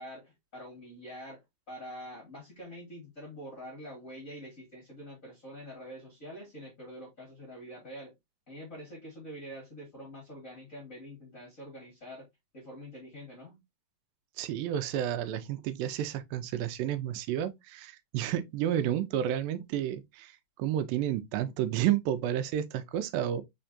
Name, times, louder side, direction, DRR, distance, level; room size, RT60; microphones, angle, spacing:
voice 1, 0.0-1.4 1.7-8.1 8.5-12.3 12.5-13.6, equal, 40° left, 1.1 m, -45 dB
voice 2, 14.4-23.4, right 11 dB, 90° right, 2.4 m, -31 dB
4.5 x 4.4 x 2.5 m
omnidirectional pair, 3.9 m